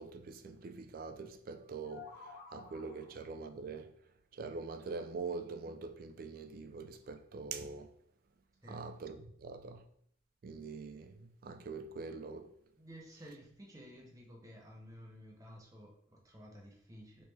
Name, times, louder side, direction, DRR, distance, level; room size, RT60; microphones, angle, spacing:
voice 1, 0.0-3.9 4.3-7.9 8.7-9.8 10.4-12.5, right 4 dB, 50° right, 0.3 m, -44 dB
sound 1, 1.5-3.3, left 4 dB, 70° left, 1.2 m, -53 dB
voice 2, 12.8-17.2, equal, 20° right, 0.6 m, -53 dB
3.2 x 3.1 x 3.2 m
head